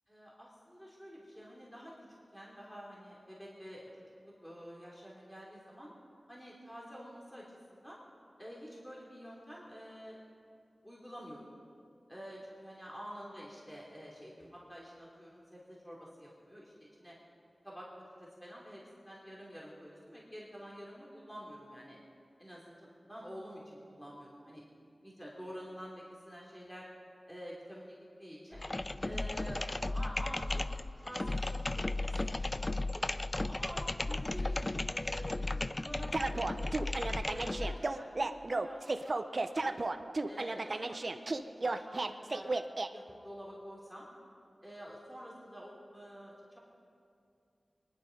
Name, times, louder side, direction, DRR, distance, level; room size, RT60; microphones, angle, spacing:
voice 1, 0.1-1.9 2.3-3.9 4.2-5.9 6.3-8.0 8.4-10.2 10.8-11.6 12.1-17.1 17.6-22.0 22.4-24.6 25.0-26.9 27.3-28.6 29.0-30.6 31.0-32.9 33.5-36.8 37.2-39.8 40.3-42.5 42.9-44.1 44.6-46.6, equal, 10° left, -5 dB, 3.1 m, -48 dB
sound 1, 28.5-37.8, left 2 dB, 30° left, 0.4 m, -35 dB
sound 2, 36.1-42.9, right 2 dB, 50° right, 0.6 m, -34 dB
23.5 x 11.5 x 5.3 m, 2.5 s
wide cardioid pair, 70°, 0 cm